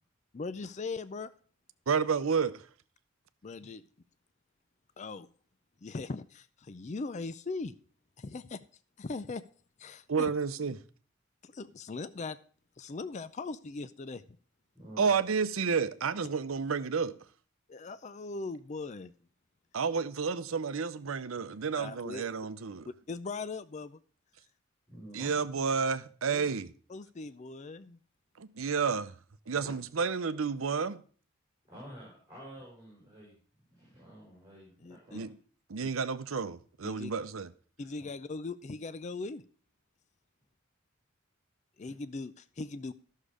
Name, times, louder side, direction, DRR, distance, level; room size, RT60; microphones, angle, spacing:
voice 1, 0.3-1.3 3.4-3.8 5.0-5.3 5.8-7.7 8.2-8.6 9.0-9.4 9.8-10.3 11.4-12.4 12.8-14.4 17.7-19.1 21.7-22.3 22.9-24.0 26.3-26.5 26.9-28.0 34.8-35.2 35.8-35.9 36.8-37.1 37.8-39.5 41.8-42.9, left 3 dB, 35° left, 0.4 m, -40 dB
voice 2, 1.9-2.7 10.1-10.8 15.0-17.1 19.7-22.9 25.1-26.7 28.4-29.1 29.5-31.0 35.1-35.3 35.7-37.5, right 5 dB, 80° right, 0.7 m, -31 dB
voice 3, 14.7-15.2 24.9-25.3 29.6-29.7 31.7-33.3 33.7-35.2 38.0-38.1, equal, 15° right, 5.1 m, -49 dB
13.0 x 6.5 x 4.9 m
head